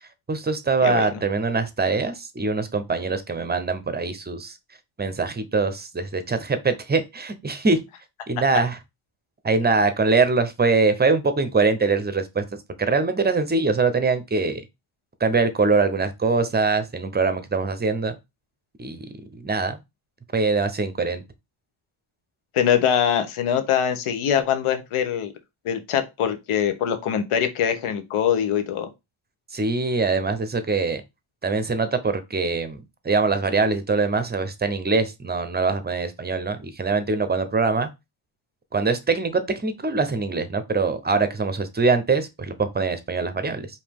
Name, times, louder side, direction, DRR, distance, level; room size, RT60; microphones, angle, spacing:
voice 1, 0.3-4.6 5.0-7.8 8.3-8.8 9.4-14.7 15.2-18.2 18.8-19.1 19.3-19.8 20.3-21.2 29.5-31.0 31.4-37.9 38.7-43.7, right 4 dB, 20° right, 0.6 m, -23 dB
voice 2, 22.5-25.3 25.6-28.9, left 9 dB, 90° left, 0.9 m, -23 dB
4.9 x 2.8 x 3.5 m
wide cardioid pair, 125°, 49 cm